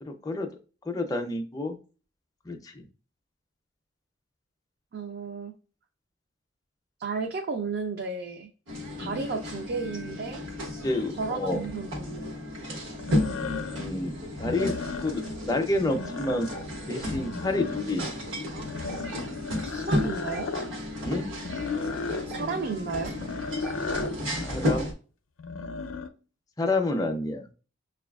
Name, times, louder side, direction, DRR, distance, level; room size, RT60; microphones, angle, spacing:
voice 1, 0.0-0.5 0.8-1.8 2.5-2.9 9.0-9.3 10.8-11.6 13.7-14.7 15.0-16.5 16.9-18.1 21.0-21.3 24.4-24.9 26.6-27.4, left 2 dB, 20° left, 4 dB, 0.4 m, -29 dB
voice 2, 4.9-5.5 7.0-8.5 9.0-10.4 11.2-12.3 19.7-20.5 22.3-23.1, right 4 dB, 50° right, 3 dB, 0.4 m, -33 dB
sound 1, 8.7-24.9, left 1 dB, 80° right, 1.0 m, -33 dB
sound 2, 11.6-11.7 13.0-13.9 14.3-15.4 15.8-16.7 17.1-18.0 18.6-20.7 21.4-22.3 23.1-24.2 25.4-26.1, left 4 dB, 90° left, 0.4 m, -35 dB
6.6 x 2.3 x 2.3 m, 0.36 s
head